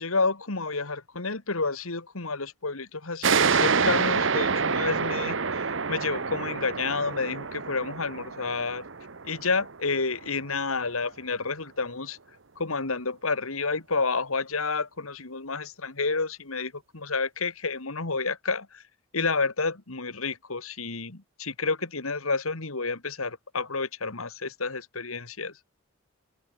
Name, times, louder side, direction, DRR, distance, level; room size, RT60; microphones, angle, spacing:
voice 1, 0.0-8.9 9.2-12.2 12.6-18.8 19.1-25.5, left 4 dB, 80° left, 2.3 m, -30 dB
sound 1, 3.2-10.4, right 5 dB, 60° right, 1.1 m, -27 dB
open air
head